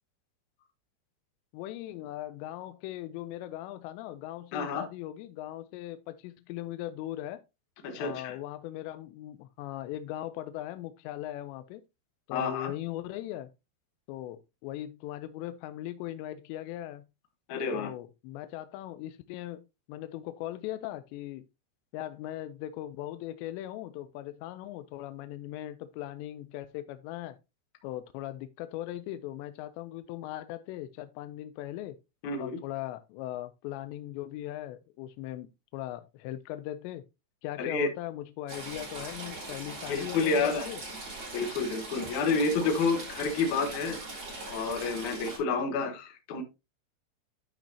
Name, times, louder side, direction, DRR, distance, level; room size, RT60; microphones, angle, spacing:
voice 1, 1.5-7.4 8.0-11.8 12.3-13.5 14.1-17.1 17.7-19.6 19.9-21.5 21.9-27.4 27.8-32.0 32.4-37.0 37.4-40.8, left 13 dB, 85° left, 2.8 m, -39 dB
voice 2, 4.5-4.9 7.8-8.4 12.3-12.7 17.5-17.9 32.2-32.6 37.6-37.9 39.9-40.7 41.3-44.0 44.5-46.4, left 4 dB, 65° left, 2.0 m, -29 dB
Stream / Trickle dribble, 38.5-45.4, right 2 dB, 25° right, 4.8 m, -41 dB
11.5 x 5.2 x 2.8 m
omnidirectional pair, 5.1 m